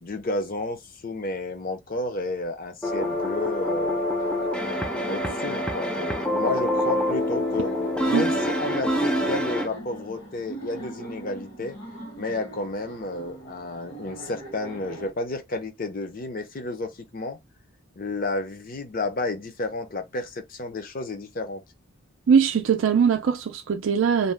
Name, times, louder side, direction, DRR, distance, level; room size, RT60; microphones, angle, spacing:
voice 1, 0.0-4.1 5.1-7.7 8.1-11.8 12.2-17.4 18.0-21.6, left 2 dB, 45° left, 0.6 m, -31 dB
sound 1, 2.8-9.7, left 1 dB, 5° left, 0.4 m, -26 dB
Laughter, 4.2-15.1, right 2 dB, 65° left, 1.4 m, -42 dB
voice 2, 22.3-24.3, right 7 dB, 70° right, 0.4 m, -21 dB
2.7 x 2.1 x 3.2 m
head